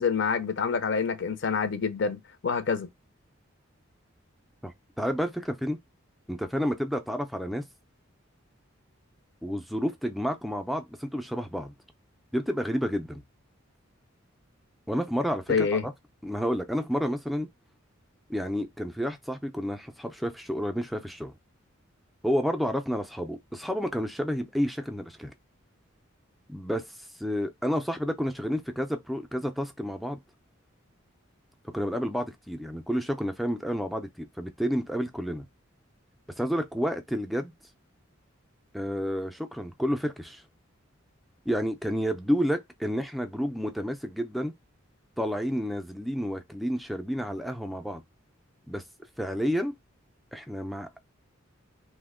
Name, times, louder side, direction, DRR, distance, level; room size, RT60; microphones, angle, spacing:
voice 1, 0.0-2.9 15.5-15.9, left 5 dB, 60° left, 0.5 m, -27 dB
voice 2, 4.6-5.8 6.3-7.6 9.4-11.7 12.3-13.2 14.9-15.9 16.2-17.5 18.3-21.3 22.2-25.3 26.5-26.9 27.2-30.2 31.7-35.5 36.4-37.5 38.7-40.4 41.5-44.5 45.2-48.0 48.7-48.8 49.2-49.7 50.3-51.0, equal, ahead, 0.4 m, -30 dB
2.9 x 2.1 x 3.5 m
head